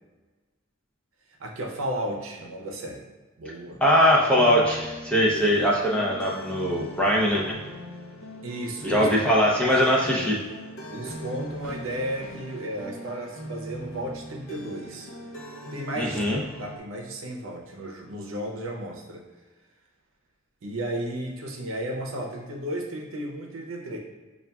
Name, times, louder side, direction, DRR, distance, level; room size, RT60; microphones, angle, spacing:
voice 1, 1.4-3.1 3.4-3.8 8.4-9.1 10.9-15.1 15.7-19.3 20.6-24.0, right 1 dB, 75° right, 0 dB, 0.7 m, -34 dB
voice 2, 3.8-7.6 8.8-10.4 16.0-16.4, equal, 5° left, -4 dB, 0.5 m, -21 dB
sound 1, 4.3-16.8, equal, 60° left, 0.7 m, -40 dB
6.8 x 2.4 x 2.3 m, 1.3 s
head